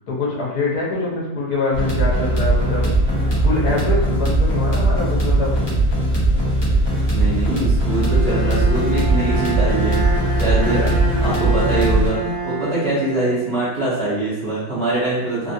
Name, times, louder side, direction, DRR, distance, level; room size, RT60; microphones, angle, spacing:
voice 1, 0.1-2.9 3.2-5.6 10.7-11.0, left 2 dB, 70° left, -5 dB, 1.3 m, -24 dB
sound 1, 1.7-12.1, right 1 dB, 40° left, 0.3 m, -19 dB
voice 2, 6.7-10.8 11.0-15.5, right 2 dB, 45° right, -9 dB, 0.9 m, -23 dB
Bowed string instrument, 7.9-13.9, right 2 dB, 75° right, 0.4 m, -27 dB
3.3 x 2.4 x 2.7 m, 1.0 s
omnidirectional pair, 1.8 m